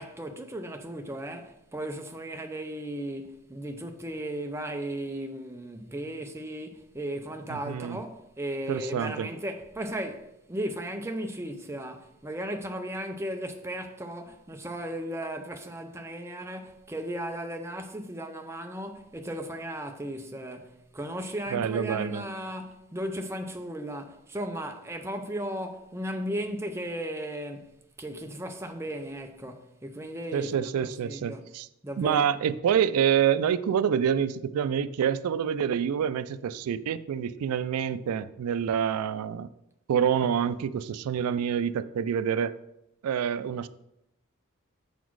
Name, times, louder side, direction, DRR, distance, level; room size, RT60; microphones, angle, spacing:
voice 1, 0.0-31.4 31.8-32.4, right 1 dB, 10° right, 0.5 m, -36 dB
voice 2, 7.5-8.0 8.7-9.3 21.5-22.2 30.3-31.7 32.0-39.5 39.9-42.5 43.0-43.7, right 8 dB, 90° right, 0.3 m, -27 dB
7.0 x 4.1 x 4.6 m
head